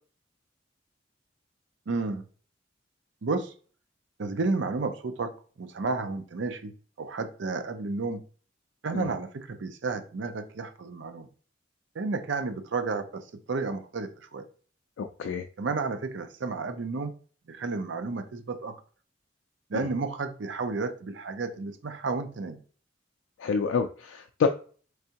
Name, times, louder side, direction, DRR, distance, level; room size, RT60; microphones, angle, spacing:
voice 1, 1.9-2.2 3.2-3.5 4.2-5.3 5.6-6.7 7.0-8.2 8.8-11.3 12.0-13.2 13.5-14.4 15.6-17.1 17.5-18.7 19.7-22.6, right 3 dB, 65° right, 0.5 m, -31 dB
voice 2, 15.0-15.4 19.7-19.9 23.4-24.5, left 6 dB, 85° left, 0.3 m, -28 dB
3.4 x 3.3 x 2.8 m
head